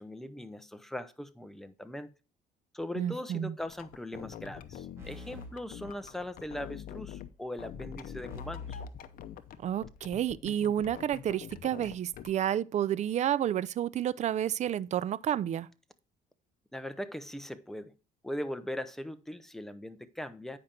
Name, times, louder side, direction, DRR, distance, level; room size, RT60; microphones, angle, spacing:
voice 1, 0.0-2.1 2.7-8.8 16.7-17.9 18.2-20.6, left 1 dB, ahead, 0.7 m, -40 dB
voice 2, 3.0-3.6 9.6-15.7, right 10 dB, 45° right, 0.4 m, -30 dB
sound 1, 3.6-7.3 7.6-9.6 9.8-12.3, left 9 dB, 60° left, 0.7 m, -45 dB
sound 2, 5.0-6.6 8.3-10.0, left 4 dB, 15° right, 2.7 m, -46 dB
8.9 x 5.1 x 4.4 m
cardioid pair, 110°, 17 cm